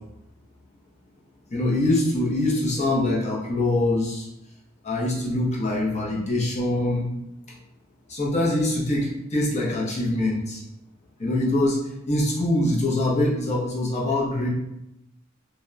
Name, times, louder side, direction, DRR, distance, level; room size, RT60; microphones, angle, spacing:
voice 1, 1.5-4.3 4.8-7.1 8.1-10.6 11.2-11.8 12.1-14.5, left 1 dB, 35° left, -4 dB, 0.6 m, -24 dB
2.7 x 2.1 x 2.4 m, 0.84 s
head